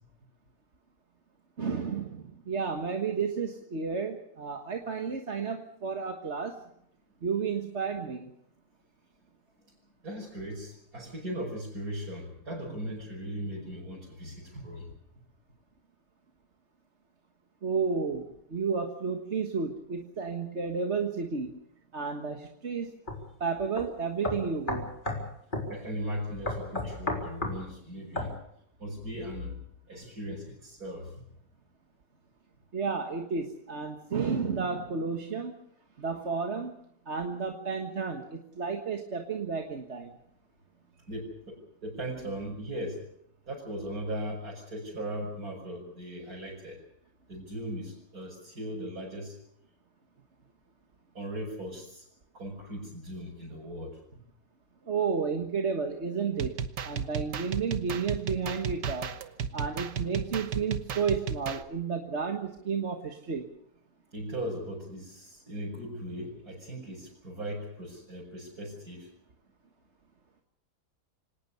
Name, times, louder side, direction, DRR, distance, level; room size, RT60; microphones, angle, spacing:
voice 1, 1.6-6.6 7.2-8.3 17.6-21.6 21.9-22.9 23.4-24.9 32.7-35.6 36.0-36.7 37.1-40.2 54.9-59.1 59.5-63.5, right 5 dB, 45° right, 4 dB, 1.8 m, -32 dB
voice 2, 10.0-14.9 25.7-28.4 28.8-31.2 41.1-43.1 43.5-46.8 47.3-49.4 51.1-52.1 52.3-54.2 64.1-69.1, equal, 65° right, -5 dB, 6.1 m, -38 dB
sound 1, 23.1-23.2 23.8-23.9 24.2-25.2 25.5-25.7 26.5-27.6 28.2-28.3, left 2 dB, 30° left, 4.2 m, -32 dB
sound 2, 56.4-61.6, right 7 dB, 90° right, 1.8 m, -34 dB
25.5 x 18.5 x 6.9 m, 0.71 s
omnidirectional pair, 1.8 m